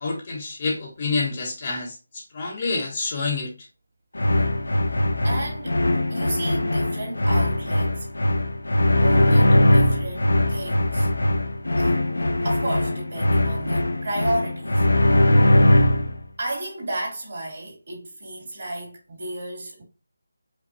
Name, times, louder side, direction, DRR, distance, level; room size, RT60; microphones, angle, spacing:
voice 1, 0.0-3.5, left 3 dB, 30° left, 0.9 m, -28 dB
sound 1, 4.1-16.2, left 1 dB, 80° left, 0.8 m, -20 dB
voice 2, 5.2-5.8 6.1-8.1 9.0-11.1 11.8-14.9 16.4-19.8, right 1 dB, 40° right, 2.2 m, -32 dB
5.2 x 2.2 x 4.0 m
figure-of-eight pair, 170°, 0 cm